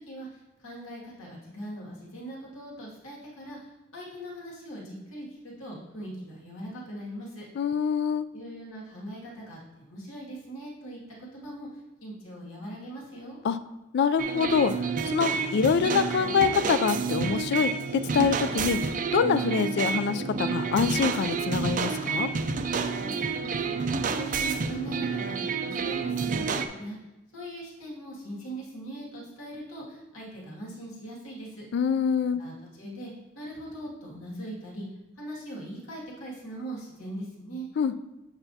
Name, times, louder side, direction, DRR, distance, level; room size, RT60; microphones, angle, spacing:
voice 1, 0.6-3.6 3.9-7.5 8.3-11.7 12.0-13.4 23.0-23.7 24.1-27.0 27.3-31.7 32.2-34.9 35.2-37.7, right 1 dB, 85° left, -5 dB, 2.1 m, -40 dB
voice 2, 7.6-8.3 13.4-13.6 13.9-14.7 15.1-18.8 19.1-22.3 31.7-32.4 37.8-38.0, left 6 dB, 55° left, 13 dB, 0.3 m, -25 dB
sound 1, 14.2-26.7, right 5 dB, 40° right, 0.4 m, -29 dB
7.8 x 5.6 x 2.8 m, 1.0 s
head